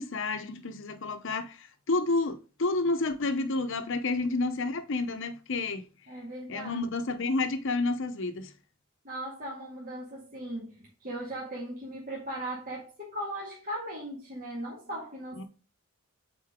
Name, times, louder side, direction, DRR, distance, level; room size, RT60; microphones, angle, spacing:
voice 1, 0.0-5.9 6.5-8.5 15.4-15.5, left 3 dB, 60° left, 0.8 m, -30 dB
voice 2, 6.1-6.8 9.0-15.5, right 1 dB, 40° right, 1.9 m, -38 dB
8.1 x 4.0 x 3.6 m
head